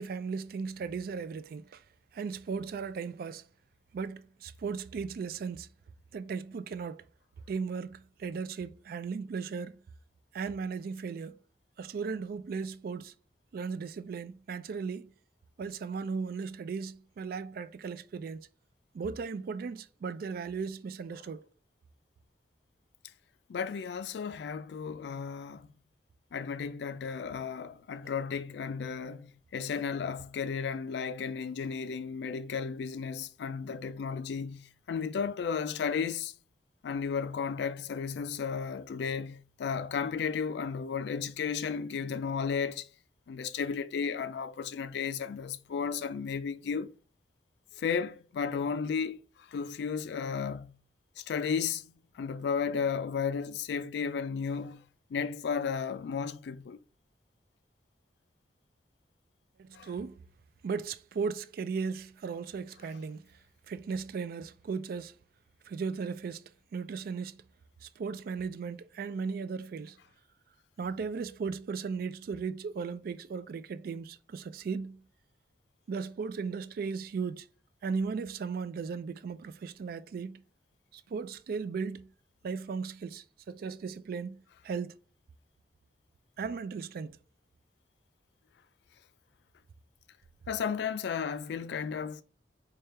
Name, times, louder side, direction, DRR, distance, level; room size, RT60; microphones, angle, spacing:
voice 1, 0.0-1.8 2.1-3.4 3.9-5.7 6.1-7.0 7.5-9.7 10.3-11.4 11.8-13.1 13.5-15.1 15.6-18.5 18.9-21.4 59.6-60.2 60.6-63.2 63.7-65.1 65.7-66.4 66.7-67.4 67.8-69.9 70.8-75.0 75.9-77.5 77.8-80.4 80.9-82.1 82.4-84.9 86.4-87.2, right 5 dB, 55° right, 0.3 m, -36 dB
voice 2, 23.5-25.7 26.3-36.3 36.8-42.9 43.3-46.9 47.7-50.8 51.2-54.8 55.1-56.8 59.7-59.9 90.5-92.2, left 6 dB, 65° left, 0.3 m, -34 dB
3.3 x 2.3 x 4.3 m
head